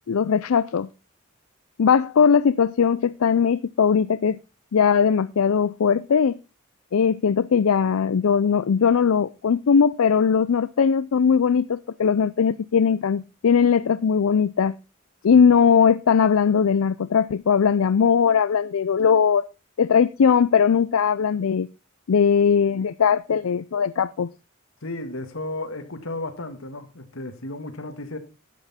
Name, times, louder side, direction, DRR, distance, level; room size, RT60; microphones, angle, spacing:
voice 1, 0.1-0.9 1.8-4.4 4.7-6.4 6.9-14.8 15.2-19.4 19.8-21.7 22.1-24.3, left 6 dB, 85° left, 0.4 m, -19 dB
voice 2, 24.8-28.2, left 2 dB, 70° left, 1.8 m, -34 dB
11.5 x 8.1 x 4.2 m
head